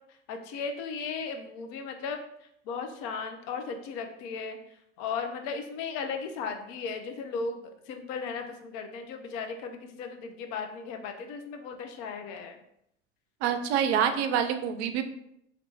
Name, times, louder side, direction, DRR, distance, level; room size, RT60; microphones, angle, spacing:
voice 1, 0.1-7.6 7.9-12.6, left 5 dB, 50° left, 5 dB, 0.6 m, -36 dB
voice 2, 13.4-15.0, right 8 dB, 55° right, 9 dB, 0.5 m, -26 dB
3.2 x 2.4 x 3.2 m, 0.76 s
figure-of-eight pair, 70°, 38 cm